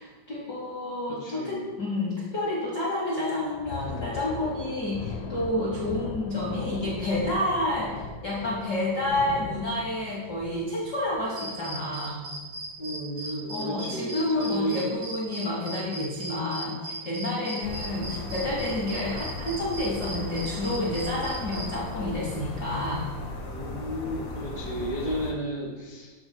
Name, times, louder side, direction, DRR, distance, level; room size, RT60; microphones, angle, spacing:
voice 1, 0.0-12.2 13.5-23.0, left 1 dB, 90° left, -4 dB, 0.9 m, -29 dB
voice 2, 1.1-1.6 12.8-14.9 23.5-26.1, equal, 85° right, -5 dB, 0.8 m, -33 dB
Thunder, 3.4-12.5 12.9-13.1 13.5-13.7 14.3-14.8, left 4 dB, 70° left, 2.0 m, -39 dB
sound 1, 11.4-21.7, right 1 dB, 65° right, 2.6 m, -37 dB
sound 2, 17.6-25.3, left 2 dB, 50° left, 1.7 m, -37 dB
14.0 x 7.0 x 2.2 m, 1.2 s
omnidirectional pair, 4.1 m